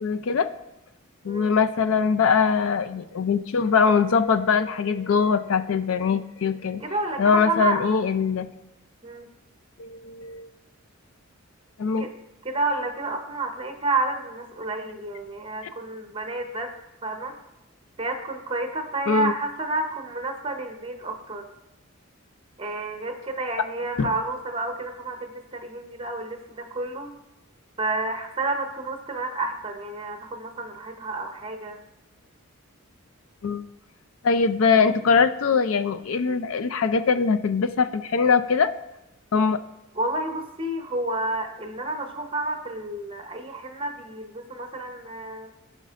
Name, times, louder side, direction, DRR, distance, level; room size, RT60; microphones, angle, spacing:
voice 1, 0.0-0.5 1.2-6.8 7.2-8.5 9.8-10.5 11.8-12.0 19.1-19.3 24.0-24.1 33.4-33.6 34.2-38.7 39.3-39.6, left 5 dB, 75° left, 11 dB, 0.4 m, -22 dB
voice 2, 6.8-7.8 9.0-9.3 12.0-12.1 12.4-16.7 17.0-17.4 18.0-21.5 22.6-27.1 27.8-31.8 39.9-45.5, right 2 dB, 25° right, 5 dB, 0.8 m, -30 dB
15.0 x 5.2 x 2.5 m, 0.96 s
head